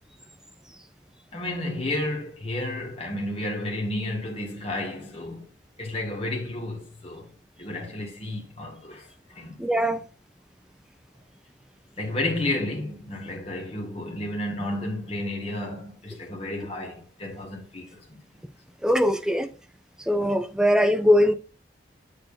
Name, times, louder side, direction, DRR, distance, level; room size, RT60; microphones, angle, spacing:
voice 1, 1.3-5.5 5.8-7.3 7.6-9.6 9.9-10.0 12.0-18.2, left 1 dB, 35° left, 1.8 m, -32 dB
voice 2, 9.6-10.0 18.8-19.5 20.1-21.3, equal, 5° right, 0.5 m, -21 dB
7.9 x 6.9 x 2.6 m
head